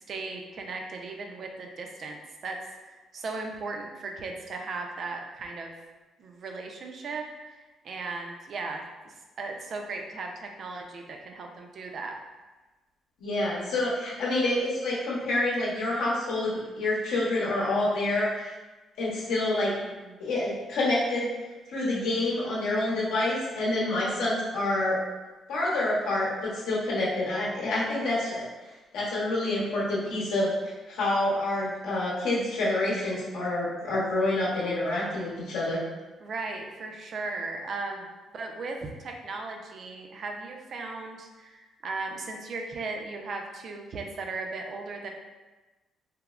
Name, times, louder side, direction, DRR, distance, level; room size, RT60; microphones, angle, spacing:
voice 1, 0.1-2.6 2.9-5.7 6.2-12.2 20.0-20.2 36.2-38.1 38.3-45.1, right 3 dB, 55° right, 2 dB, 0.4 m, -37 dB
voice 2, 13.2-18.5 19.0-19.7 20.2-21.3 21.7-25.0 25.5-28.4 28.9-35.8, left 2 dB, 90° left, -6 dB, 0.7 m, -27 dB
3.4 x 2.0 x 2.3 m, 1.2 s
cardioid pair, 90°, 0 cm